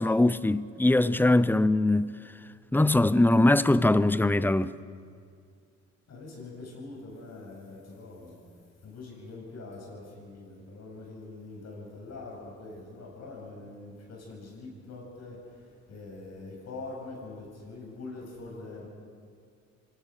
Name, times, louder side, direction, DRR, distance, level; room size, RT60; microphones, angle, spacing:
voice 1, 0.0-2.1 2.7-4.7, left 2 dB, 5° left, 0.6 m, -22 dB
voice 2, 6.1-8.3 8.8-15.4 15.9-18.9, left 3 dB, 60° left, 8.0 m, -43 dB
25.0 x 19.0 x 6.6 m
cardioid pair, 90°, 30 cm